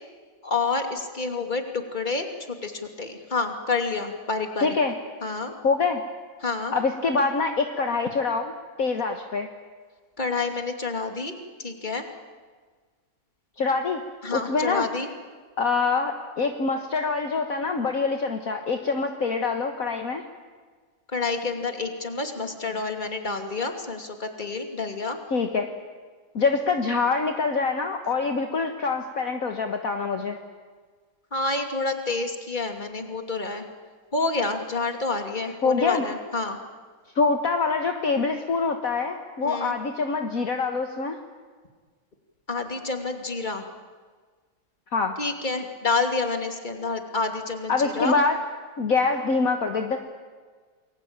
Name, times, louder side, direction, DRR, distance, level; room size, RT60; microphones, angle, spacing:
voice 1, 0.4-2.3 2.6-4.7 5.2-5.5 6.4-6.7 10.2-11.3 11.6-12.1 14.2-15.1 21.1-25.2 31.3-33.7 34.1-36.6 39.4-39.7 42.5-43.7 45.2-48.1, left 3 dB, 25° left, 5 dB, 2.8 m, -28 dB
voice 2, 4.6-4.9 5.6-6.0 6.7-8.5 8.8-9.5 13.6-14.0 14.3-14.9 15.6-20.2 25.3-25.7 26.3-30.4 35.6-36.1 37.2-41.2 44.9-45.1 47.7-48.4 48.8-50.0, left 4 dB, 50° left, 5 dB, 1.9 m, -25 dB
29.0 x 22.0 x 8.9 m, 1.5 s
omnidirectional pair, 1.9 m